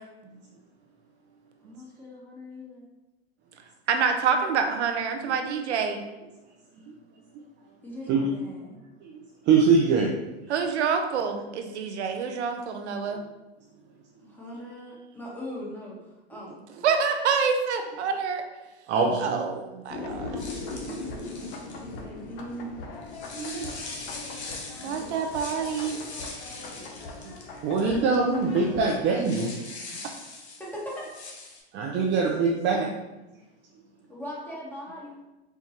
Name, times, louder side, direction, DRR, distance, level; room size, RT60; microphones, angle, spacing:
voice 1, 1.6-2.8 7.8-8.7 14.3-16.0 16.3-16.6 20.2-21.3 21.6-22.8 30.6-31.1 34.1-35.2, equal, 5° left, -5 dB, 1.1 m, -40 dB
voice 2, 3.9-6.0 10.5-13.2 16.8-18.4 19.2-20.4 24.8-26.0 30.0-30.1, right 6 dB, 85° right, 5 dB, 0.5 m, -27 dB
voice 3, 9.5-10.1 18.9-19.4 20.3-20.4 20.9-21.3 23.3-23.7 24.9-25.2 27.2-27.3 27.6-29.5 31.7-32.9, right 4 dB, 35° right, -2 dB, 0.5 m, -24 dB
sound 1, 19.9-29.1, left 3 dB, 55° left, 0.6 m, -40 dB
sound 2, 20.4-22.0 23.0-28.2 28.4-28.5 29.2-31.6, left 3 dB, 80° left, 1.0 m, -41 dB
4.5 x 2.3 x 2.8 m, 1.0 s
hypercardioid pair, 105°, 33 cm